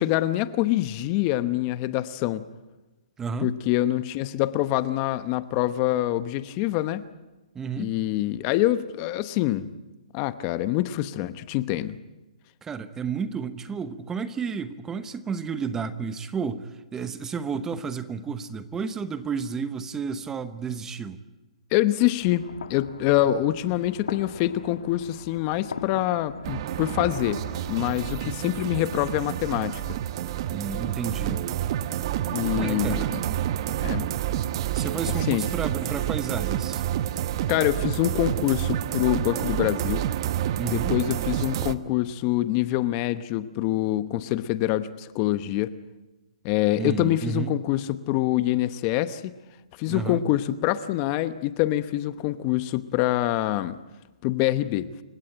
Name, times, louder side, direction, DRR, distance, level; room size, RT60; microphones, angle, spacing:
voice 1, 0.0-2.4 3.4-7.0 7.8-9.7 10.1-12.0 21.7-27.4 27.7-30.0 32.3-33.2 33.8-34.1 35.3-35.4 37.5-40.0 40.7-45.7 46.4-49.3 49.8-53.8 54.2-54.9, left 15 dB, 30° left, 13 dB, 1.0 m, -25 dB
voice 2, 3.2-3.5 7.5-7.9 12.6-21.2 28.2-28.4 30.5-31.4 32.5-33.2 34.7-36.8 40.6-41.0 46.7-47.5 49.9-50.2, right 6 dB, 10° right, 12 dB, 0.9 m, -31 dB
sound 1, 22.2-28.2, left 6 dB, 80° left, 1.6 m, -41 dB
sound 2, 26.4-41.7, right 12 dB, 45° right, 1.0 m, -29 dB
29.0 x 17.0 x 8.9 m, 1.1 s
hypercardioid pair, 150°, 4 cm